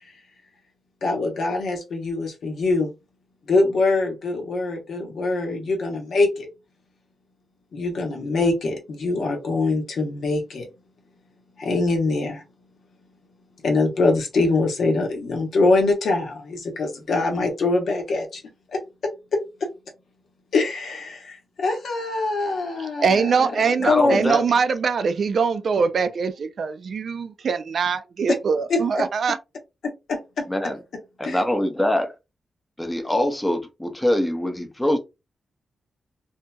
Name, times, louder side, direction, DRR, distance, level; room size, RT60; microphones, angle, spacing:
voice 1, 1.0-2.9 3.5-6.5 7.7-10.7 11.6-12.4 13.6-18.4 18.7-19.7 20.5-23.5 23.9-24.3 28.7-29.0 30.1-30.5 31.2-31.4, left 3 dB, 70° left, 0.9 m, -23 dB
voice 2, 23.0-29.4, right 5 dB, 60° right, 0.4 m, -23 dB
voice 3, 23.8-24.4 30.5-30.8 31.2-32.1 32.8-35.0, left 1 dB, 10° left, 0.6 m, -23 dB
2.7 x 2.7 x 2.2 m
wide cardioid pair, 125°, 0 cm